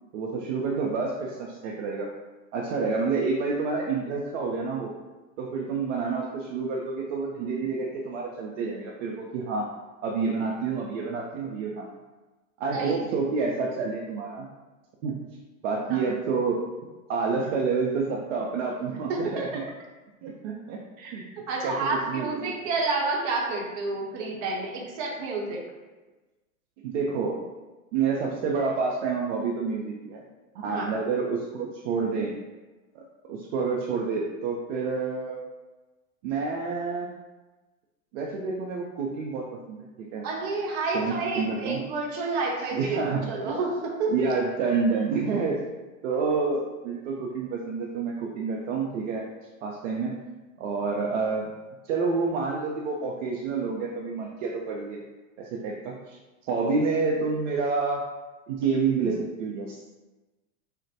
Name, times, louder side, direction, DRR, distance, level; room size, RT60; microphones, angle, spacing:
voice 1, 0.1-2.1 2.5-4.9 5.4-9.7 10.0-11.9 12.6-14.5 15.0-15.1 15.6-16.6 17.1-19.5 20.2-20.8 21.1-21.2 21.6-21.8 22.1-22.5 26.8-27.4 27.9-30.2 30.5-32.3 32.9-35.4 36.2-37.1 38.1-40.3 40.9-41.8 42.7-43.3 44.1-45.6 46.0-49.2 49.6-50.1 50.6-51.5 51.9-55.0 55.4-56.2 56.5-58.0 58.5-59.8, right 4 dB, 60° right, -2 dB, 0.6 m, -28 dB
voice 2, 12.7-13.0 15.9-16.0 19.1-19.6 21.0-25.6 30.6-30.9 40.2-44.1, right 3 dB, 45° right, -1 dB, 0.9 m, -30 dB
4.0 x 2.1 x 2.7 m, 1.2 s
hypercardioid pair, 110°, 41 cm